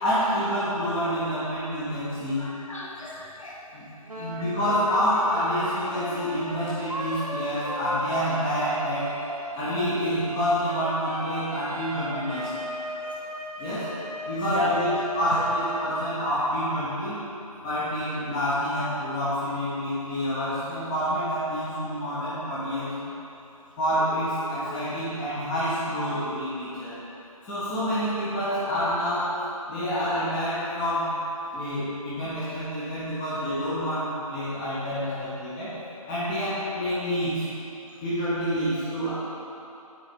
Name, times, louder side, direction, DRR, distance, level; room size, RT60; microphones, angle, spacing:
voice 1, 0.0-2.5 3.7-3.9 4.2-9.1 9.5-12.5 13.6-13.9 14.3-17.2 17.6-22.9 23.8-27.0 27.4-29.4 29.7-31.2 31.5-35.8 36.1-37.5 38.0-39.1, equal, 10° left, -11 dB, 0.6 m, -28 dB
voice 2, 2.4-3.6 4.2-4.5 12.9-13.1 14.5-14.7 15.3-15.4 24.6-24.8, left 4 dB, 55° left, -3 dB, 1.3 m, -34 dB
Wind instrument woodwind instrument, 4.1-16.5, right 1 dB, 80° right, 1.0 m, -36 dB
8.2 x 4.1 x 4.3 m, 2.9 s
figure-of-eight pair, 150°, 19 cm